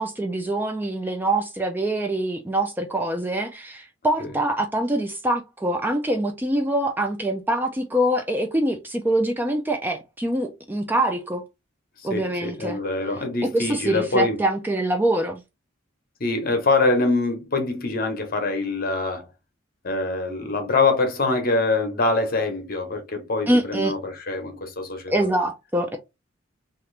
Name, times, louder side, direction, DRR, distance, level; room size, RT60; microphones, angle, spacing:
voice 1, 0.0-11.4 12.0-12.8 13.5-15.4 23.5-24.0 25.1-26.0, right 1 dB, 10° right, 0.3 m, -24 dB
voice 2, 12.1-14.4 16.2-19.3 19.8-25.1, left 3 dB, 45° left, 0.9 m, -24 dB
2.9 x 2.4 x 3.2 m
head